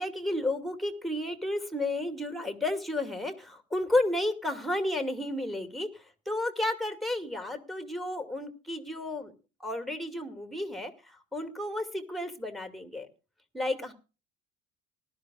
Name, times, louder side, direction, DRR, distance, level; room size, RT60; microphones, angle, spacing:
voice 1, 0.0-9.3 9.6-13.1 13.5-13.9, left 1 dB, ahead, 8 dB, 2.3 m, -32 dB
19.0 x 12.5 x 2.5 m, 0.32 s
hypercardioid pair, 60°, 39 cm